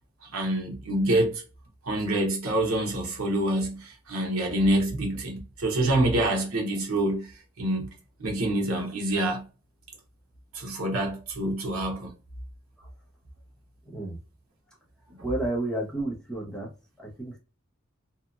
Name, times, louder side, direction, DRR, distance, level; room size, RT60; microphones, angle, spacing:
voice 1, 0.3-1.4 1.8-7.3 7.6-7.9 8.2-9.4 10.5-12.1, right 1 dB, 80° right, 0.9 m, -26 dB
voice 2, 15.2-16.7 17.0-17.4, right 1 dB, 5° left, 0.8 m, -31 dB
2.8 x 2.4 x 2.4 m
head